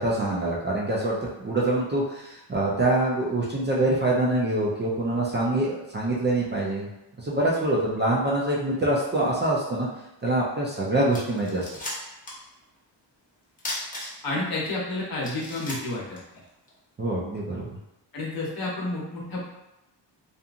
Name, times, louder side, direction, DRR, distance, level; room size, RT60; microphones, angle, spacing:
voice 1, 0.0-6.9 7.2-9.9 10.2-11.6 17.0-17.7, right 1 dB, 25° right, -5 dB, 0.4 m, -25 dB
sound 1, 11.1-12.5 12.8-12.9 13.6-14.5 14.9-15.0 15.2-16.8, left 1 dB, 20° left, 0.6 m, -36 dB
voice 2, 14.2-16.2 18.1-19.4, left 2 dB, 55° left, -4 dB, 0.9 m, -30 dB
2.8 x 2.5 x 2.4 m, 0.92 s
wide cardioid pair, 140°, 43 cm